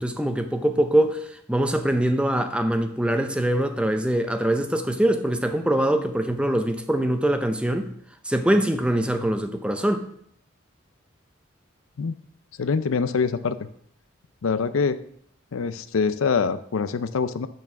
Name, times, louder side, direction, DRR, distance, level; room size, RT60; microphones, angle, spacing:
voice 1, 0.0-7.9 8.2-10.1, right 1 dB, 5° right, 0.5 m, -23 dB
voice 2, 12.6-13.7 14.4-15.0 15.5-17.5, left 5 dB, 85° left, 0.5 m, -24 dB
8.2 x 4.6 x 6.1 m
head